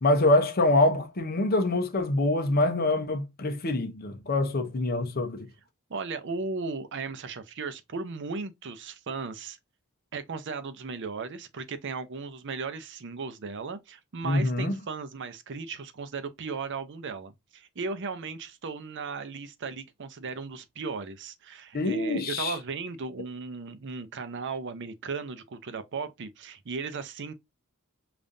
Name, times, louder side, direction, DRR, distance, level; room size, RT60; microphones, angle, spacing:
voice 1, 0.0-5.5 14.2-14.7 21.7-22.6, left 2 dB, 45° left, 0.6 m, -25 dB
voice 2, 5.9-9.6 10.1-27.3, right 4 dB, 55° right, 0.6 m, -36 dB
5.1 x 2.5 x 2.6 m
head